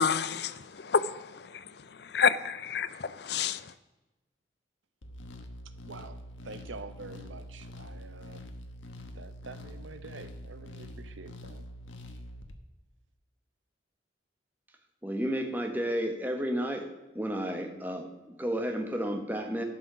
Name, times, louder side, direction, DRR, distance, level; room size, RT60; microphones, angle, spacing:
voice 1, 0.0-3.7, left 6 dB, 55° left, 0.5 m, -29 dB
sound 1, 5.0-12.5, left 1 dB, 85° left, 1.1 m, -45 dB
voice 2, 5.8-8.4 9.1-11.7, right 3 dB, 80° right, 0.9 m, -46 dB
voice 3, 15.0-16.9 17.1-19.6, equal, 10° right, 1.2 m, -32 dB
11.5 x 6.1 x 6.1 m
head